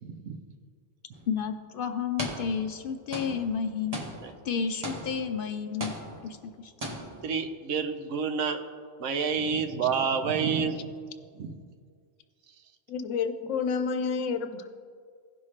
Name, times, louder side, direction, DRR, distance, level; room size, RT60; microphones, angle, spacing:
voice 1, 0.0-0.4 4.2-4.3 7.2-8.6 9.0-11.0 11.3-11.6, right 6 dB, 85° right, 7 dB, 1.1 m, -29 dB
sound 1, 1.1-1.3 2.2-2.8 3.1-5.4 5.8-6.5 6.8-7.4, right 1 dB, 30° right, 1.2 m, -38 dB
voice 2, 1.3-4.0 4.4-5.9 6.2-6.7, left 6 dB, 60° left, 8 dB, 0.6 m, -31 dB
voice 3, 12.9-14.7, left 5 dB, 90° left, 9 dB, 1.0 m, -29 dB
16.5 x 5.6 x 3.2 m, 2.1 s
omnidirectional pair, 1.3 m